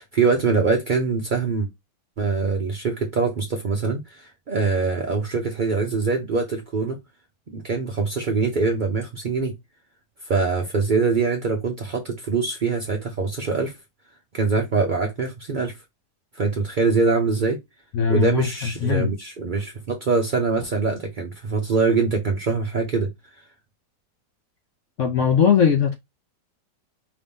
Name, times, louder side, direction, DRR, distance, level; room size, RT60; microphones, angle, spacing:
voice 1, 0.0-1.7 2.2-7.0 7.5-9.5 10.2-13.8 14.3-15.7 16.3-17.6 18.1-23.1, right 4 dB, 70° right, 0.4 m, -23 dB
voice 2, 17.9-18.5 18.8-19.1 25.0-26.0, left 7 dB, 65° left, 0.8 m, -19 dB
5.1 x 2.7 x 3.5 m
omnidirectional pair, 1.9 m